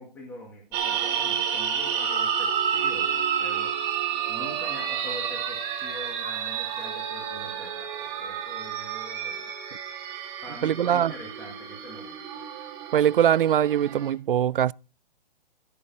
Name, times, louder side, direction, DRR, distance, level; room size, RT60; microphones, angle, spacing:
voice 1, 0.0-3.8 4.3-7.9 8.2-9.5 10.4-12.2, left 1 dB, 5° left, 1.8 m, -43 dB
sound 1, 0.7-14.1, right 8 dB, 15° right, 2.0 m, -30 dB
voice 2, 10.6-11.1 12.9-14.7, right 10 dB, 65° right, 0.5 m, -22 dB
16.0 x 7.0 x 5.4 m
hypercardioid pair, 180°, 29 cm